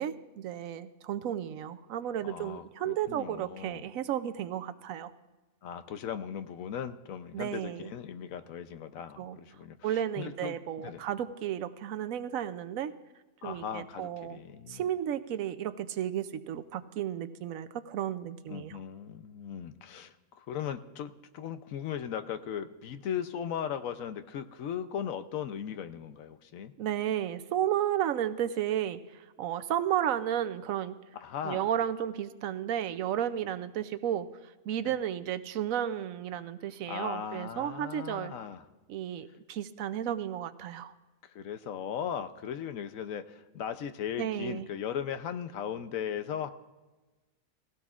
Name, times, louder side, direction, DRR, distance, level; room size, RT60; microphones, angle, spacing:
voice 1, 0.0-5.1 7.3-7.9 9.2-9.4 9.8-12.9 13.4-14.4 14.7-18.8 26.8-29.0 29.4-31.0 31.4-34.3 34.7-38.3 38.9-40.9 44.2-44.7, right 10 dB, 80° right, 12 dB, 1.0 m, -33 dB
voice 2, 2.2-3.8 5.6-11.0 13.4-14.8 18.5-26.7 31.2-31.7 34.8-34.9 36.9-38.6 41.3-46.5, left 8 dB, 80° left, 10 dB, 1.1 m, -38 dB
18.5 x 16.0 x 2.4 m, 1.2 s
omnidirectional pair, 1.4 m